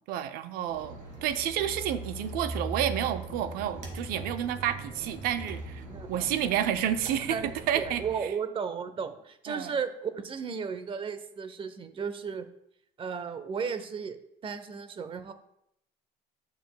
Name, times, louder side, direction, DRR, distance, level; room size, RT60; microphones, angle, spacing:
voice 1, 0.1-5.8 6.1-8.3 9.5-9.8, right 10 dB, 70° right, 11 dB, 0.6 m, -30 dB
sound 1, 0.7-8.1, right 2 dB, 50° right, 3.0 m, -40 dB
voice 2, 5.9-6.3 7.2-12.5 13.0-14.2 14.4-15.3, right 6 dB, 35° right, 10 dB, 0.7 m, -34 dB
10.5 x 6.5 x 2.2 m, 0.78 s
supercardioid pair, 100°, 16 cm